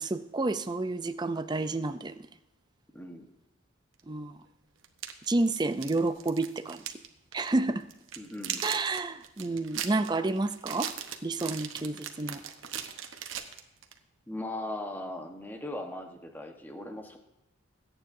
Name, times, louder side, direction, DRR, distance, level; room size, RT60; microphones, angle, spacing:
voice 1, 0.0-2.1 4.1-4.3 5.3-6.8 7.3-7.8 8.6-10.9 11.2-12.4, right 2 dB, 20° right, 11 dB, 0.4 m, -30 dB
voice 2, 2.9-3.3 8.2-8.6 14.3-17.2, left 1 dB, 10° left, 3 dB, 1.1 m, -39 dB
sound 1, 4.0-4.1 4.8-7.1 7.3-7.5 7.9-14.0, right 9 dB, 70° right, 1.0 m, -39 dB
21.0 x 9.1 x 2.7 m, 0.97 s
head